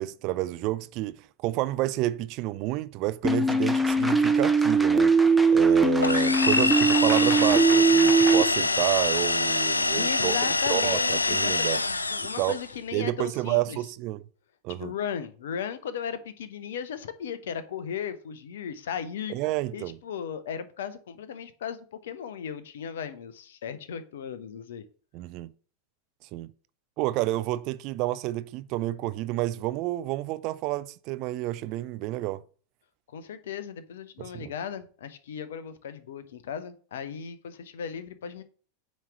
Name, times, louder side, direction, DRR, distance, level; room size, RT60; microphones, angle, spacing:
voice 1, 0.0-5.1 5.5-11.8 12.4-12.6 12.9-14.2 14.6-14.9 19.3-20.0 25.1-25.5 26.3-26.5 27.0-32.4 34.2-34.5, right 17 dB, 45° right, 0.4 m, -30 dB
sound 1, 3.2-8.4, right 3 dB, ahead, 0.7 m, -21 dB
sound 2, 6.0-12.7, left 3 dB, 80° left, 0.4 m, -25 dB
voice 2, 10.0-13.8 14.7-19.3 19.7-24.8 33.1-38.4, left 8 dB, 60° left, 0.8 m, -36 dB
9.0 x 3.2 x 6.0 m
figure-of-eight pair, 85°, 0 cm